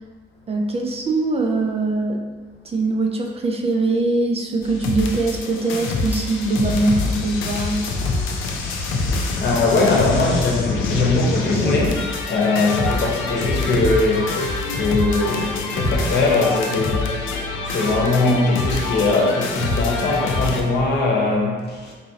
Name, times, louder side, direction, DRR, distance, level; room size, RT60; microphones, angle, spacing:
voice 1, 0.5-2.2 2.6-7.8, right 2 dB, 30° right, 1 dB, 0.4 m, -22 dB
sound 1, 4.6-20.6, left 3 dB, 85° left, 0.5 m, -25 dB
voice 2, 9.4-14.3 14.8-17.3 17.6-21.9, left 3 dB, 55° left, -2 dB, 0.9 m, -20 dB
4.0 x 2.6 x 2.8 m, 1.4 s
cardioid pair, 90°, 20 cm